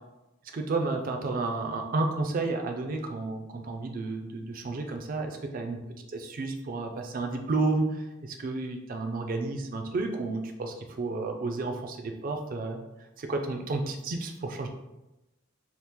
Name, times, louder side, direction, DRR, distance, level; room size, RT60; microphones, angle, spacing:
voice 1, 0.5-5.8 6.1-12.8 13.2-14.7, right 3 dB, 40° right, 4 dB, 0.4 m, -31 dB
2.9 x 2.4 x 3.5 m, 0.98 s
head